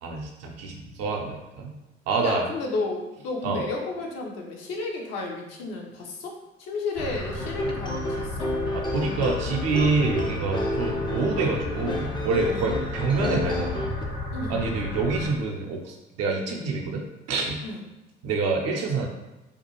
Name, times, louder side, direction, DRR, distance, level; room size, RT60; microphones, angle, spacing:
voice 1, 0.0-1.7 2.1-2.4 3.4-3.6 8.7-14.0 14.5-17.6 18.2-19.1, right 3 dB, 60° right, 1 dB, 0.6 m, -27 dB
voice 2, 2.2-8.5 12.5-12.6 14.3-15.0 17.6-17.9, left 3 dB, 60° left, 0 dB, 0.7 m, -33 dB
sound 1, 6.9-15.3, left 2 dB, 80° left, 1.1 m, -33 dB
sound 2, 7.4-14.0, left 1 dB, 15° left, 0.4 m, -31 dB
2.5 x 2.3 x 3.0 m, 1.0 s
hypercardioid pair, 50°, 29 cm